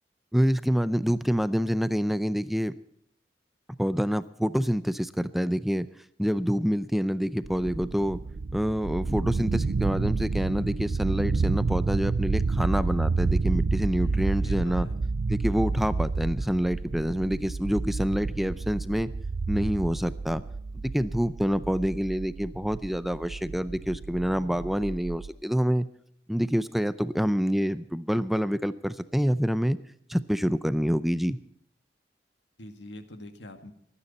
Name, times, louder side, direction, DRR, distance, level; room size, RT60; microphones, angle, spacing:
voice 1, 0.3-2.7 3.8-5.9 6.2-8.2 8.5-14.9 15.3-19.1 19.5-20.4 20.8-25.9 26.3-29.8 30.1-31.4, equal, ahead, 14 dB, 0.5 m, -27 dB
sound 1, 7.4-25.3, right 3 dB, 55° right, 0.5 m, -30 dB
voice 2, 14.0-15.0 32.6-33.7, left 1 dB, 90° left, 8 dB, 1.9 m, -44 dB
24.5 x 9.9 x 4.2 m, 0.68 s
head